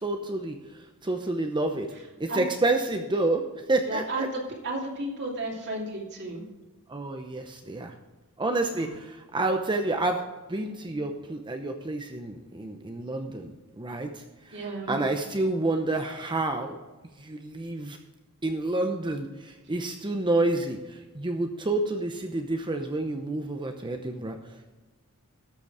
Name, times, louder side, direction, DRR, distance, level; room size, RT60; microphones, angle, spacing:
voice 1, 0.0-1.9 2.2-4.3 6.9-7.9 8.4-10.2 10.5-16.8 17.2-18.0 18.4-24.7, right 2 dB, 20° right, 5 dB, 0.7 m, -29 dB
voice 2, 3.9-6.4 8.7-8.9 14.5-14.9, right 2 dB, 55° right, 0 dB, 2.7 m, -33 dB
13.0 x 6.9 x 4.9 m, 1.2 s
head